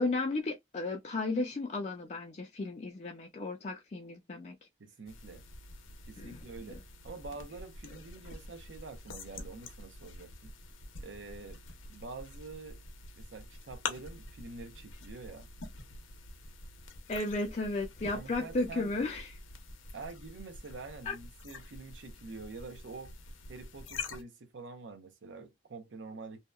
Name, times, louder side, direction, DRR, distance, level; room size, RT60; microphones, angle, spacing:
voice 1, 0.0-4.6 6.2-6.4 6.7-6.8 17.1-19.3 21.1-21.2, left 2 dB, 35° left, 0.4 m, -34 dB
voice 2, 4.8-5.4 6.1-10.5 11.0-11.6 11.9-12.8 13.2-15.5 18.1-18.9 19.9-23.1 23.5-26.4, right 3 dB, 75° right, 0.6 m, -46 dB
sound 1, 5.1-24.2, left 3 dB, 90° left, 0.6 m, -46 dB
2.7 x 2.1 x 2.2 m
head